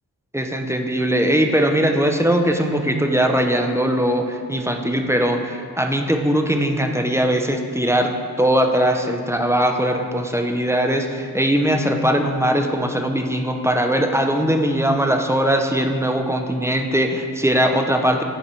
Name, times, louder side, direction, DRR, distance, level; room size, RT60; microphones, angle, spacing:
voice 1, 0.3-8.1 8.4-18.2, equal, 5° right, 4 dB, 0.5 m, -20 dB
9.9 x 4.1 x 4.3 m, 2.2 s
wide cardioid pair, 75°, 38 cm